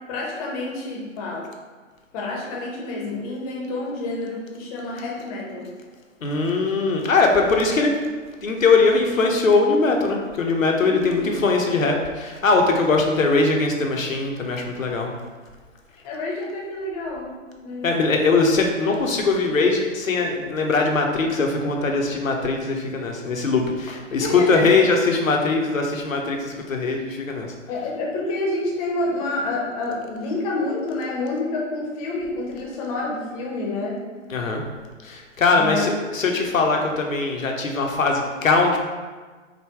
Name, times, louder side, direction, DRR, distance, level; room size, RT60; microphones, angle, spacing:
voice 1, 0.1-1.5 2.1-5.7 10.8-11.3 16.0-17.3 17.6-17.9 24.1-24.8 27.7-34.0 35.6-35.9, left 2 dB, 25° left, -3 dB, 0.8 m, -28 dB
voice 2, 6.2-7.9 8.4-15.1 17.8-27.5 34.3-34.6 35.0-38.8, left 3 dB, 80° left, 2 dB, 0.8 m, -21 dB
4.8 x 2.2 x 3.4 m, 1.4 s
figure-of-eight pair, 120°, 39 cm